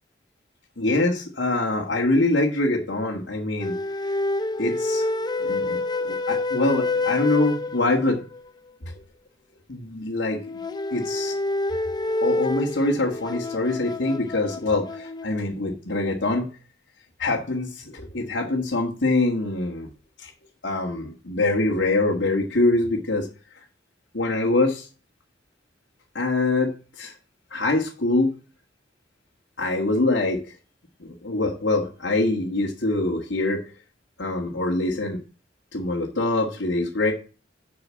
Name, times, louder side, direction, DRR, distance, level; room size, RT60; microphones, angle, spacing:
voice 1, 0.8-4.2 4.6-5.1 5.4-8.2 8.9-9.0 9.7-10.4 10.9-11.4 12.2-16.5 17.2-19.9 20.2-20.3 20.6-23.3 23.6-23.7 24.1-24.9 26.2-27.1 27.5-28.3 29.6-30.6 31.0-33.6 34.2-35.2 35.7-37.1, left 2 dB, 85° left, -2 dB, 1.6 m, -24 dB
sound 1, 3.6-8.4 10.3-15.4, left 2 dB, 25° left, 0.6 m, -28 dB
7.0 x 6.1 x 7.4 m, 0.37 s
head